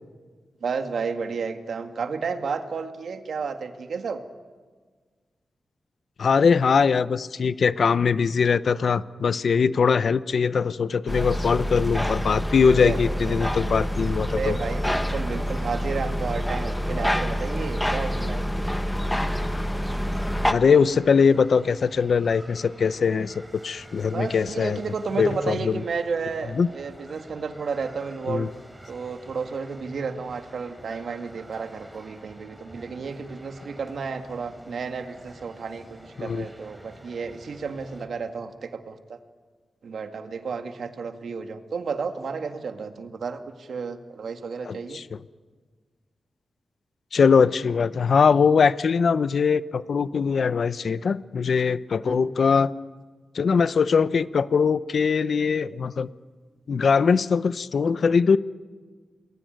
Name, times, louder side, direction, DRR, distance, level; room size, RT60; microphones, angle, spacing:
voice 1, 0.6-4.2 12.8-13.5 14.3-18.4 24.1-28.5 28.9-39.2 39.8-45.0 52.1-52.2, right 5 dB, 70° right, 7 dB, 1.9 m, -32 dB
voice 2, 6.2-14.6 20.5-24.8 25.2-25.7 26.6-26.7 28.3-28.5 36.2-36.5 44.6-45.2 47.1-52.7 53.3-56.1 56.7-58.4, left 5 dB, 65° left, 15 dB, 0.8 m, -21 dB
sound 1, 11.1-20.5, equal, 5° left, 1.3 m, -27 dB
sound 2, 19.8-38.1, right 1 dB, 10° right, 3.6 m, -46 dB
28.0 x 21.5 x 9.3 m, 1.5 s
wide cardioid pair, 105°, 0 cm